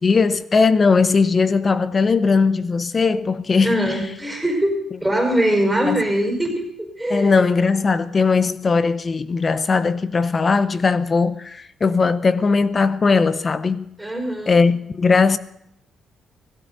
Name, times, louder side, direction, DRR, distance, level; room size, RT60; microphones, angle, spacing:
voice 1, 0.0-3.8 5.8-6.0 7.1-13.9 14.5-15.4, left 4 dB, 35° left, 0.7 m, -18 dB
voice 2, 3.6-7.4 14.0-14.6, equal, 5° right, 5.1 m, -22 dB
17.0 x 16.0 x 4.0 m
cardioid pair, 90°, 0 cm